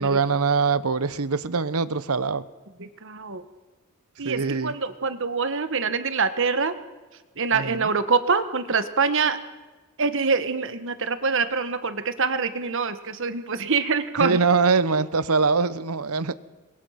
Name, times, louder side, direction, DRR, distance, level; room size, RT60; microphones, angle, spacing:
voice 1, 0.0-2.4 4.2-4.7 7.5-7.9 14.2-16.3, right 4 dB, 85° right, 1.0 m, -23 dB
voice 2, 2.8-3.4 4.2-6.8 7.4-9.4 10.0-14.4, right 5 dB, 60° right, 1.4 m, -25 dB
28.0 x 22.5 x 5.9 m
head